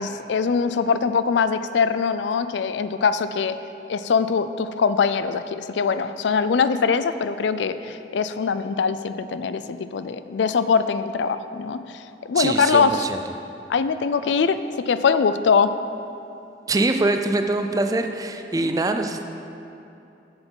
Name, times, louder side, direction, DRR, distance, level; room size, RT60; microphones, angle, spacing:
voice 1, 0.0-3.6 3.9-11.8 12.2-13.0 13.7-14.6 14.9-15.7, left 5 dB, 80° left, 12 dB, 0.4 m, -22 dB
voice 2, 12.3-13.2 16.7-19.2, right 2 dB, 20° right, 6 dB, 0.4 m, -23 dB
8.1 x 8.0 x 5.4 m, 2.8 s
head